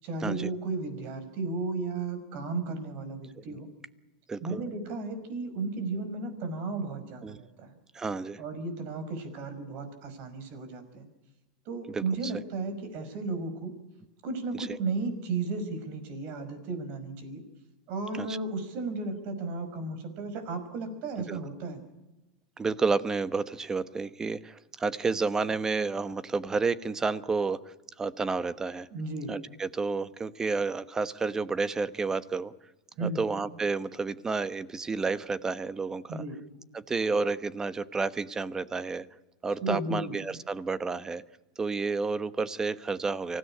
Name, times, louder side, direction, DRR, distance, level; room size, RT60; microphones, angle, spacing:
voice 1, 0.0-3.7 4.4-7.7 8.4-11.1 11.7-13.7 14.2-17.4 17.9-21.8 28.9-29.3 33.0-33.2 36.1-36.4 39.6-40.2, right 3 dB, 50° right, 10 dB, 5.4 m, -34 dB
voice 2, 4.3-4.6 7.2-7.4 7.9-8.4 11.9-12.0 18.2-18.4 21.3-21.4 22.6-27.6 28.0-28.9 29.3-32.5 33.0-36.2 36.7-39.0 39.4-41.2 41.6-43.4, right 4 dB, 15° right, 15 dB, 1.1 m, -30 dB
25.0 x 16.5 x 10.0 m, 1.0 s
supercardioid pair, 130°, 4 cm